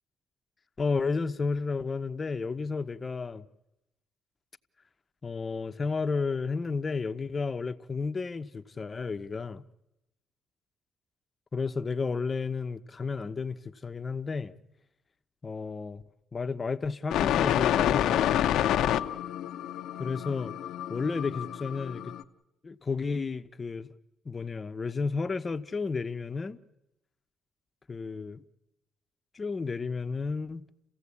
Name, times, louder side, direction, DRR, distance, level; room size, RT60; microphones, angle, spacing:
voice 1, 0.8-3.5 5.2-9.6 11.5-14.5 15.4-16.0 16.3-18.5 20.0-20.5 20.9-22.1 22.6-23.9 24.2-26.6 27.9-28.4 29.3-30.7, left 4 dB, 35° left, 0.9 m, -32 dB
sound 1, 17.1-22.2, left 11 dB, 80° left, 0.8 m, -28 dB
29.0 x 16.0 x 8.5 m
cardioid pair, 90°, 0 cm